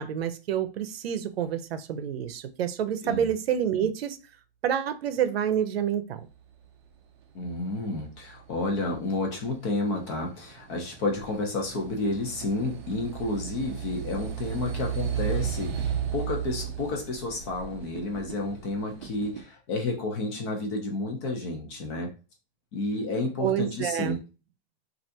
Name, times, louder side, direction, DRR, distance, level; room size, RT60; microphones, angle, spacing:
voice 1, 0.0-4.2 4.6-6.2 23.4-24.2, right 9 dB, 80° right, 10 dB, 0.6 m, -28 dB
voice 2, 7.3-22.1 22.7-24.2, left 2 dB, 30° left, 2 dB, 0.7 m, -31 dB
sound 1, 8.1-19.4, right 8 dB, 30° right, 0.5 m, -35 dB
3.2 x 2.5 x 2.7 m, 0.32 s
supercardioid pair, 165°, 30 cm